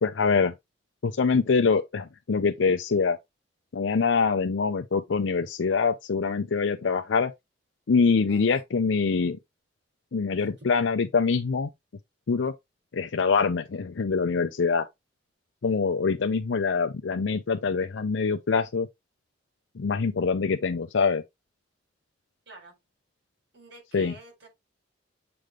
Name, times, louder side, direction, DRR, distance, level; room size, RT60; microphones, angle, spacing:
voice 1, 0.0-0.5 1.0-3.2 3.7-7.3 7.9-9.4 10.1-11.7 12.3-12.5 12.9-14.9 15.6-18.9 19.8-21.2 23.9-24.1, left 5 dB, 85° left, 0.5 m, -24 dB
voice 2, 8.3-8.6 10.4-10.7 22.5-22.7 23.5-24.5, right 1 dB, 65° right, 4.2 m, -49 dB
7.7 x 3.3 x 3.7 m
head